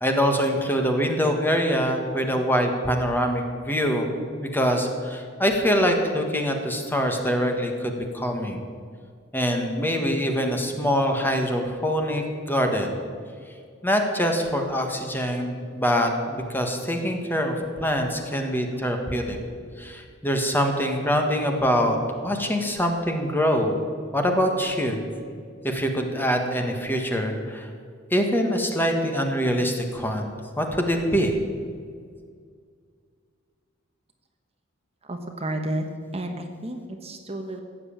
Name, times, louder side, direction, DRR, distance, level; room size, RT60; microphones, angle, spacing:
voice 1, 0.0-4.1 4.5-8.6 9.3-12.9 13.8-19.4 19.8-22.0 22.2-23.8 24.1-25.0 25.6-27.7 28.1-31.3, equal, 10° left, 3 dB, 1.6 m, -24 dB
voice 2, 35.0-35.8 36.1-37.6, right 1 dB, 30° right, 5 dB, 1.1 m, -31 dB
15.5 x 7.7 x 8.7 m, 2.1 s
head